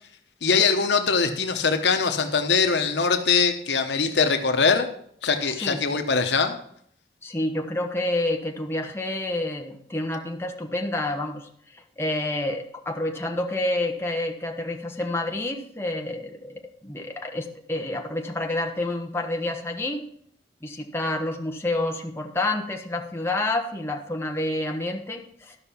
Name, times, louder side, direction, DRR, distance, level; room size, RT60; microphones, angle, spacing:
voice 1, 0.4-4.9 5.2-6.6, left 5 dB, 80° left, 6 dB, 1.1 m, -22 dB
voice 2, 5.5-5.8 7.2-20.0 20.6-25.6, left 2 dB, 15° left, 2 dB, 0.9 m, -29 dB
12.5 x 5.8 x 5.6 m, 0.65 s
head